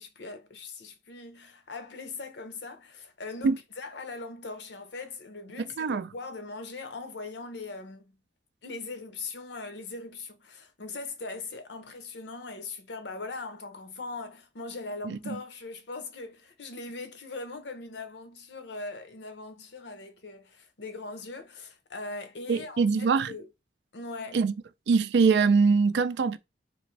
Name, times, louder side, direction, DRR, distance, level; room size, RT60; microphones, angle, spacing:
voice 1, 0.0-8.1 8.6-23.5 23.9-24.4, left 3 dB, 70° left, 0.7 m, -40 dB
voice 2, 5.8-6.1 15.1-15.4 22.5-23.3 24.3-24.5 24.9-26.4, right 5 dB, 65° right, 0.4 m, -23 dB
3.7 x 2.6 x 3.2 m
head